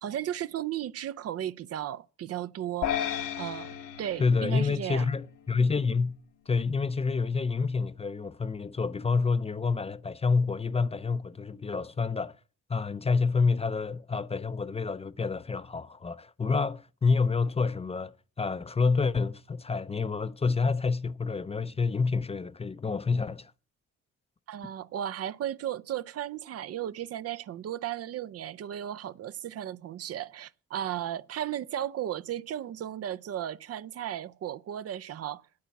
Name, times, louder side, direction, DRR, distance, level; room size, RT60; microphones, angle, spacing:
voice 1, 0.0-2.9 3.4-3.7 4.0-5.1 24.5-35.4, right 11 dB, 55° right, 0.5 m, -35 dB
sound 1, 2.8-5.3, left 10 dB, 80° left, 1.4 m, -34 dB
voice 2, 4.2-6.2 6.5-12.3 12.7-23.5, left 4 dB, 20° left, 0.5 m, -28 dB
9.1 x 8.6 x 6.9 m
cardioid pair, 90°, 30 cm